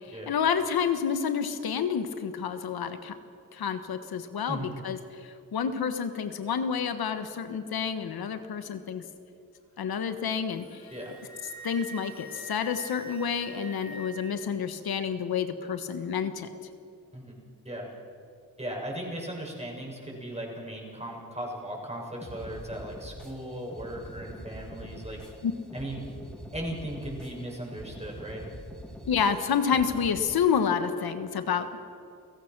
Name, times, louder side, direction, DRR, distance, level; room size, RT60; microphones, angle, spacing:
voice 1, 0.1-3.2 3.5-9.0 9.8-10.9 11.6-16.5 25.4-25.5 29.1-31.8, left 7 dB, 90° left, 9 dB, 1.5 m, -29 dB
Wind instrument woodwind instrument, 10.5-14.4, right 2 dB, 50° left, 5.2 m, -45 dB
voice 2, 18.6-25.2 25.7-26.0 26.5-28.4, right 1 dB, 20° right, -1 dB, 6.9 m, -37 dB
sound 1, 22.2-30.2, equal, ahead, 6.4 m, -44 dB
29.5 x 17.0 x 6.2 m, 2.5 s
cardioid pair, 65°, 36 cm